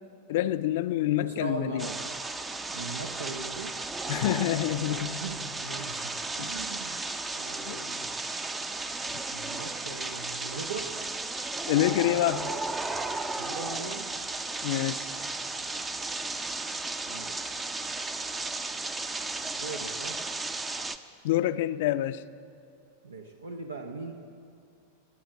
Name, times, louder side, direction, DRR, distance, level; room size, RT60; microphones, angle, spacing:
voice 1, 0.3-1.9 4.1-5.2 6.4-6.5 7.7-7.8 11.7-12.6 14.6-15.1 21.2-22.2, left 14 dB, 50° left, 0.5 m, -27 dB
voice 2, 1.1-2.0 2.7-3.8 4.7-7.0 7.3-8.1 9.3-10.9 13.4-14.2 17.1-17.5 19.5-20.2 23.0-24.1, right 4 dB, 70° right, 0.9 m, -40 dB
sound 1, 1.8-21.0, right 3 dB, 15° right, 0.6 m, -34 dB
19.5 x 9.3 x 7.1 m
figure-of-eight pair, 90°, 0 cm